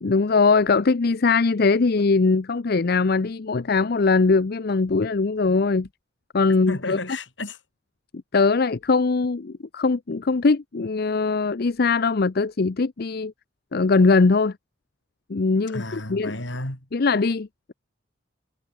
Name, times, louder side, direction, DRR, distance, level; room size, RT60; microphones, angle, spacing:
voice 1, 0.0-5.9 6.3-7.0 8.3-13.3 13.7-14.5 15.3-15.8 16.1-16.3 16.9-17.7, left 4 dB, 55° left, 0.6 m, -21 dB
voice 2, 6.7-7.6 15.7-16.9, left 2 dB, 75° left, 6.4 m, -32 dB
head